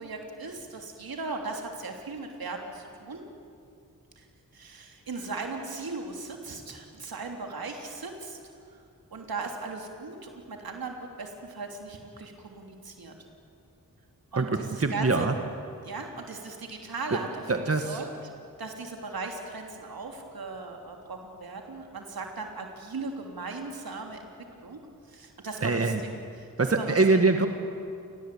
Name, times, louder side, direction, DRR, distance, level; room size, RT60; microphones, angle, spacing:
voice 1, 0.0-3.2 4.2-4.3 4.5-8.4 9.1-13.1 14.3-15.3 15.8-17.4 17.8-18.1 18.6-24.2 24.6-24.8 25.1-26.1 26.4-27.0, right 3 dB, 80° right, 3 dB, 3.3 m, -38 dB
voice 2, 14.8-15.3 17.1-17.2 17.5-18.0 25.6-26.0 26.6-27.5, right 3 dB, 40° right, 6 dB, 1.8 m, -23 dB
28.5 x 18.0 x 8.6 m, 2.4 s
cardioid pair, 45°, 36 cm